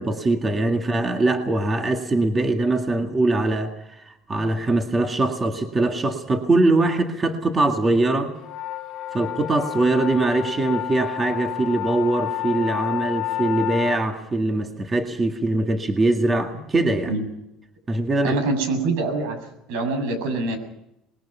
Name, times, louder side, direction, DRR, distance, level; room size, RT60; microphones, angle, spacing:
voice 1, 0.0-8.3 9.1-17.1 17.9-18.4, right 2 dB, 20° right, 5 dB, 1.9 m, -22 dB
sound 1, 8.4-14.0, left 14 dB, 45° left, 2.0 m, -30 dB
voice 2, 18.2-19.4 19.7-20.6, right 3 dB, 85° right, 8 dB, 7.6 m, -24 dB
27.0 x 21.0 x 5.6 m, 0.86 s
cardioid pair, 155°, 0 cm